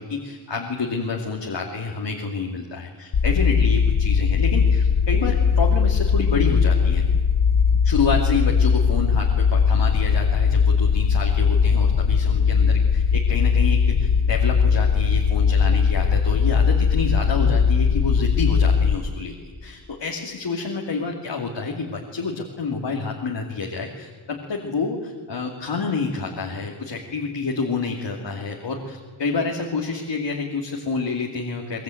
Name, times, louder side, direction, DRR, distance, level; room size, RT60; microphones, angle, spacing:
voice 1, 0.0-7.0 7.8-31.8, left 4 dB, 60° left, 0 dB, 2.8 m, -28 dB
sound 1, 3.1-19.0, left 6 dB, 85° left, 1.6 m, -19 dB
23.0 x 21.5 x 9.2 m, 1.4 s
wide cardioid pair, 135°, 47 cm